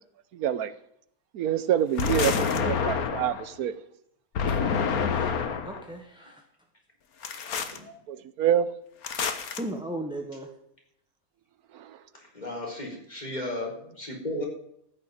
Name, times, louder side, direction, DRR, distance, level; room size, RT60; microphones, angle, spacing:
voice 1, 0.3-0.7 1.3-3.8 8.1-8.7 11.7-11.8 14.3-14.4, right 10 dB, 85° right, 1.2 m, -26 dB
sound 1, 2.0-3.5 4.4-5.8 7.2-7.8 9.0-9.6, left 6 dB, 75° left, 1.7 m, -27 dB
voice 2, 4.9-6.4 9.6-10.5, right 1 dB, 5° right, 1.2 m, -37 dB
voice 3, 7.6-8.0 12.1-14.5, left 2 dB, 30° left, 4.4 m, -36 dB
14.5 x 6.8 x 9.1 m
omnidirectional pair, 1.5 m